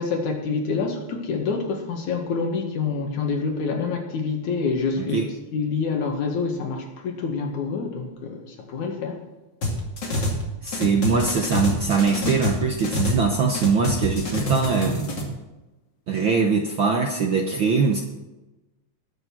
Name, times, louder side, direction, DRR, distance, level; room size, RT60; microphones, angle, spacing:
voice 1, 0.0-9.2, left 4 dB, 70° left, 3 dB, 3.1 m, -27 dB
sound 1, 9.6-10.4 10.7-13.2 13.5-15.2, left 1 dB, 35° left, 2.8 m, -26 dB
voice 2, 10.6-15.1 16.1-18.0, right 5 dB, 60° right, 2 dB, 1.3 m, -22 dB
20.5 x 6.8 x 6.1 m, 1.0 s
omnidirectional pair, 3.5 m